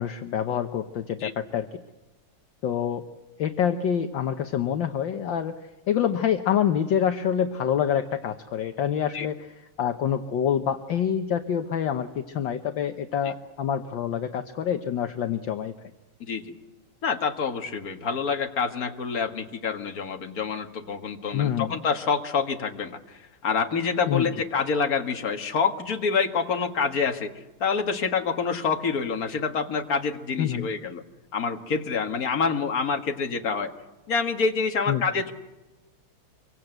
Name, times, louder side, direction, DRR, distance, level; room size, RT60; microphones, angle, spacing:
voice 1, 0.0-1.7 2.6-3.1 3.4-5.6 5.9-15.7 21.3-21.8 24.1-24.3 30.4-30.7 34.9-35.0, left 9 dB, 65° left, 7 dB, 1.6 m, -26 dB
voice 2, 16.2-16.5 17.0-27.3 27.6-31.0 31.3-33.7 34.1-35.3, left 5 dB, 45° left, 5 dB, 2.1 m, -27 dB
25.5 x 24.0 x 8.0 m, 1.1 s
omnidirectional pair, 2.4 m